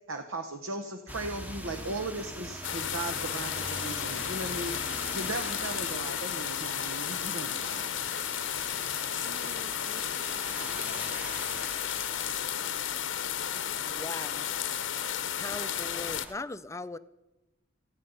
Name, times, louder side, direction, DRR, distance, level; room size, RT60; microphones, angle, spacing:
voice 1, 0.1-4.8 5.1-7.9, right 2 dB, 85° right, 1.1 m, -37 dB
sound 1, 1.1-16.3, equal, 10° right, 0.8 m, -43 dB
sound 2, 2.6-16.3, left 10 dB, 70° left, 0.8 m, -33 dB
voice 2, 8.6-11.7, right 4 dB, 45° right, 1.9 m, -51 dB
voice 3, 13.9-14.5 15.4-17.0, left 2 dB, 15° left, 0.5 m, -39 dB
27.5 x 9.5 x 5.5 m
head